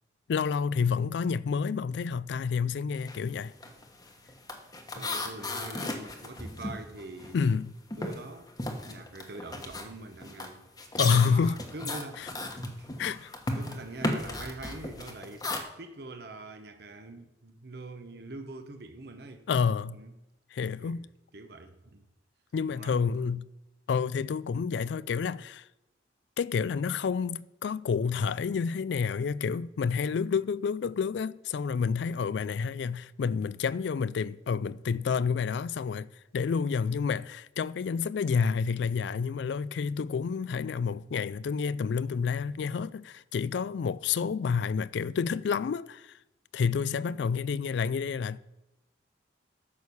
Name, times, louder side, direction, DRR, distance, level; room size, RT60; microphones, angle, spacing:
voice 1, 0.3-3.5 7.3-7.7 10.9-11.6 12.2-12.3 13.0-13.3 19.5-20.0 20.5-21.1 22.5-23.5 23.9-25.7 26.4-36.1 36.3-46.1 46.5-48.4, left 6 dB, 70° left, 0.3 m, -29 dB
sound 1, 3.0-3.3 3.5-7.6 7.9-15.6, left 2 dB, 20° left, 1.1 m, -36 dB
voice 2, 4.9-7.4 8.0-8.5 8.9-12.3 12.6-12.9 13.5-15.5 15.8-19.5 19.9-20.1 20.6-21.0 21.3-22.1 22.7-23.0, right 2 dB, 55° right, 1.0 m, -44 dB
11.0 x 6.4 x 7.0 m
head